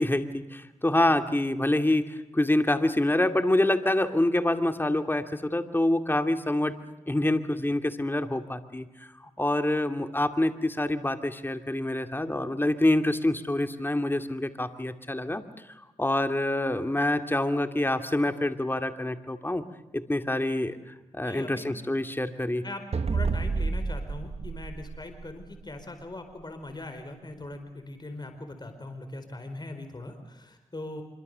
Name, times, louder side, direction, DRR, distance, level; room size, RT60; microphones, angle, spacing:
voice 1, 0.0-6.8 7.1-8.9 9.4-15.4 16.0-19.7 19.9-20.8 21.1-22.6, left 1 dB, 15° left, 8 dB, 2.4 m, -26 dB
voice 2, 21.2-21.7 22.6-22.8 23.1-31.0, left 2 dB, 35° left, 7 dB, 4.7 m, -40 dB
sound 1, 22.9-25.6, right 4 dB, 55° right, 1.4 m, -30 dB
26.5 x 24.0 x 6.9 m, 1.0 s
cardioid pair, 50°, 13 cm